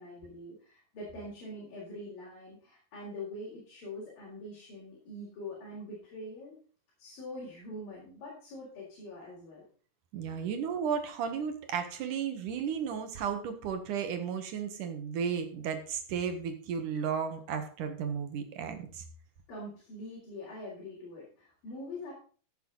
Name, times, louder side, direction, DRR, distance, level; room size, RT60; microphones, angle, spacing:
voice 1, 0.0-6.6 7.0-9.7 10.3-10.5 19.5-22.1, left 1 dB, 70° left, -5 dB, 5.6 m, -44 dB
voice 2, 10.1-19.0, right 7 dB, 65° right, 7 dB, 2.9 m, -34 dB
15.5 x 8.0 x 4.0 m, 0.42 s
omnidirectional pair, 4.2 m